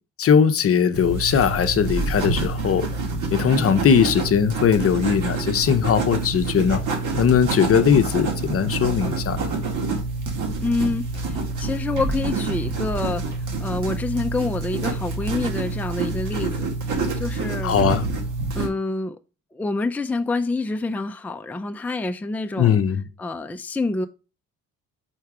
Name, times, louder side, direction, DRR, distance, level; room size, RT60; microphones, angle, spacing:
voice 1, 0.2-2.9 3.3-6.8 7.2-9.5 17.6-18.0 22.6-23.1, left 7 dB, 45° left, 0.7 m, -19 dB
sound 1, 0.9-18.7, right 3 dB, 70° right, 1.9 m, -27 dB
voice 2, 10.6-16.7 17.2-17.8 18.5-19.2 19.5-22.8 23.2-24.1, left 2 dB, 5° left, 0.5 m, -27 dB
4.5 x 4.5 x 4.9 m
cardioid pair, 80°, 31 cm